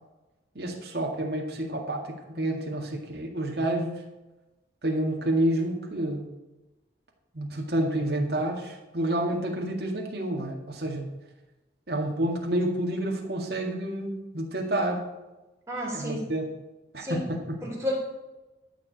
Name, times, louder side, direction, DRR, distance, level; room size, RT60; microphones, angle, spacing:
voice 1, 0.6-4.0 4.8-6.3 7.3-11.1 11.9-15.1 15.9-16.5 16.9-17.6, right 1 dB, 60° right, 0 dB, 2.0 m, -29 dB
voice 2, 15.7-16.3 17.0-17.2 17.6-18.0, equal, 15° right, -3 dB, 3.3 m, -31 dB
12.5 x 4.8 x 8.5 m, 1.1 s
head